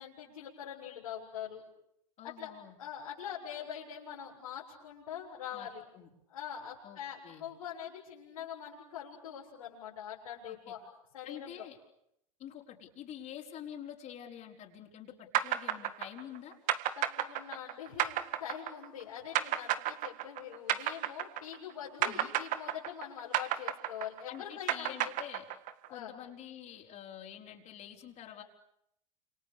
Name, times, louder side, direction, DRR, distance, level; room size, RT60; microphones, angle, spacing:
voice 1, 0.0-1.6 2.2-2.5 2.8-5.8 6.3-10.9 11.1-11.7 17.0-25.1 25.9-26.1, left 9 dB, 80° left, -6 dB, 7.4 m, -44 dB
voice 2, 2.2-2.8 5.5-6.1 6.8-7.5 10.5-10.7 11.2-11.8 12.4-16.5 22.0-22.3 24.3-25.5 25.9-28.4, left 10 dB, 40° left, -1 dB, 5.0 m, -47 dB
sound 1, 15.3-21.7 22.0-25.9, right 12 dB, 50° right, 1.8 m, -32 dB
29.5 x 28.0 x 6.9 m, 0.78 s
hypercardioid pair, 100°, 18 cm